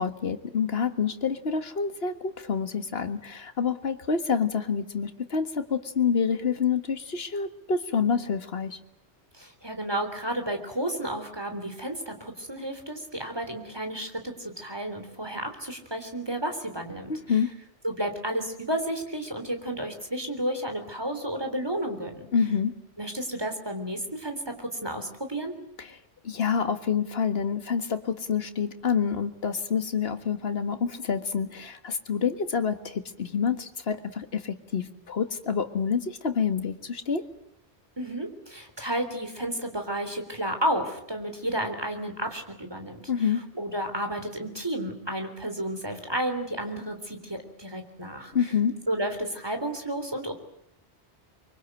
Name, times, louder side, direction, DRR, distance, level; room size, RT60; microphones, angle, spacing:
voice 1, 0.0-8.8 17.1-17.5 22.3-22.7 25.8-26.0 26.2-37.2 43.1-43.4 48.3-48.8, left 6 dB, 60° left, 9 dB, 1.8 m, -27 dB
voice 2, 9.3-17.1 17.8-22.3 23.0-25.5 38.0-48.3 48.9-50.3, right 1 dB, 20° right, 6 dB, 3.6 m, -32 dB
24.5 x 24.0 x 9.0 m, 0.75 s
omnidirectional pair, 1.1 m